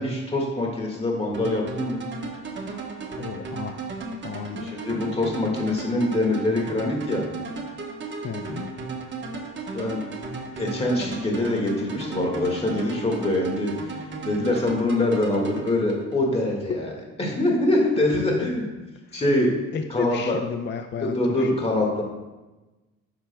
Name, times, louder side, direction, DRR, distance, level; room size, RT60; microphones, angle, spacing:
voice 1, 0.0-2.0 4.6-7.3 9.7-10.0 10.6-13.7 14.3-16.9 17.2-18.7 19.1-19.5 19.9-20.4 21.0-22.0, left 1 dB, 20° left, -1 dB, 1.8 m, -24 dB
sound 1, 1.3-16.4, right 4 dB, 40° right, 1.2 m, -35 dB
voice 2, 3.2-3.8 4.2-4.8 8.2-8.7 18.2-18.3 19.1-19.2 19.7-21.5, left 6 dB, 40° left, 7 dB, 0.5 m, -33 dB
9.9 x 6.0 x 2.2 m, 1.1 s
cardioid pair, 90°, 30 cm